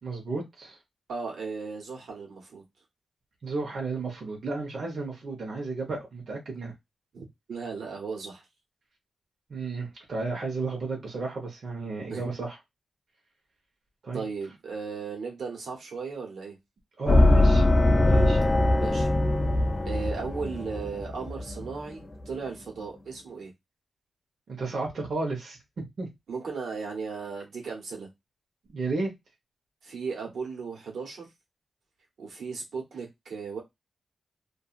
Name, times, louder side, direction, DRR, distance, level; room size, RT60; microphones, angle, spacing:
voice 1, 0.0-0.8 3.4-6.7 9.5-12.6 14.0-14.2 17.0-17.6 18.1-18.4 24.5-26.1 28.7-29.1, right 3 dB, 60° right, 1.0 m, -33 dB
voice 2, 1.1-2.6 7.1-8.4 12.1-12.4 14.1-16.6 18.8-19.1 19.8-23.5 26.3-28.1 29.8-31.3 32.2-33.6, right 5 dB, 85° right, 1.1 m, -36 dB
sound 1, 17.1-21.8, left 1 dB, 30° left, 0.4 m, -22 dB
2.7 x 2.6 x 2.4 m
wide cardioid pair, 110°, 0 cm